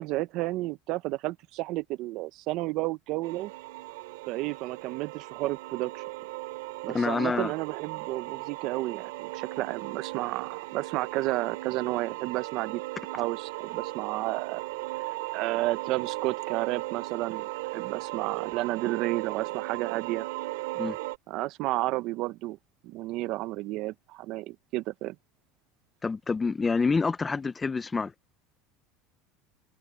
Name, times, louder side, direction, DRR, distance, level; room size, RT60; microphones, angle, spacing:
voice 1, 0.0-3.5 4.3-6.0 6.8-12.8 13.1-14.6 15.3-20.3 21.3-22.6 22.8-25.2, right 18 dB, 60° right, 0.7 m, -32 dB
sound 1, 3.2-21.2, right 21 dB, 90° right, 2.7 m, -37 dB
voice 2, 6.9-7.5 20.8-21.0 26.0-28.1, left 4 dB, 15° left, 0.6 m, -27 dB
supercardioid pair, 130°, 0 cm